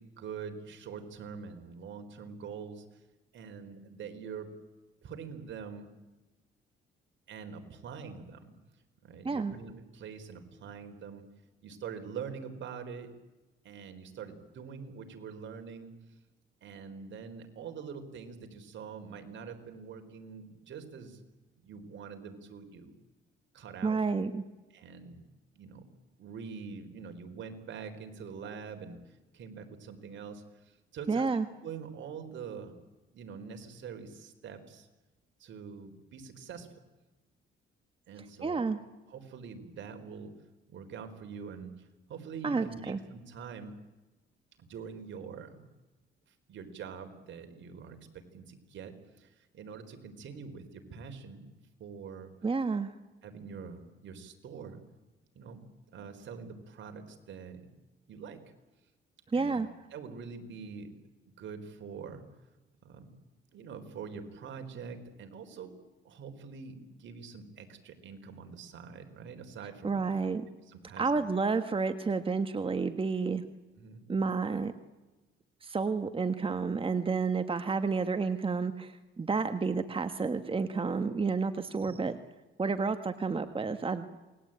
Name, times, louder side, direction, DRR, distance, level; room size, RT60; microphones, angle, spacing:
voice 1, 0.0-3.1 3.3-4.5 5.0-5.9 7.3-8.5 9.0-11.3 11.6-13.1 13.6-16.2 16.6-21.2 21.6-22.9 23.5-24.0 24.7-25.2 25.5-25.8 26.2-32.8 33.1-34.9 35.4-36.8 38.1-38.6 39.1-40.3 40.7-43.8 44.6-45.6 46.3-51.5 51.8-52.3 53.2-54.8 55.3-55.6 55.9-57.7 58.1-58.4 59.3-59.6 59.9-60.9 61.4-62.2 62.8-63.2 63.5-65.8 66.0-70.1 70.7-71.2 73.8-74.0, right 6 dB, 70° right, 6 dB, 4.1 m, -44 dB
voice 2, 23.8-24.4 31.1-31.5 38.4-38.8 42.4-43.0 52.4-52.9 59.3-59.7 69.8-70.4 71.0-73.4 74.1-74.7 75.6-82.2 82.6-84.1, right 4 dB, 25° right, 9 dB, 1.5 m, -30 dB
28.0 x 20.5 x 9.0 m, 1.1 s
cardioid pair, 90°, 20 cm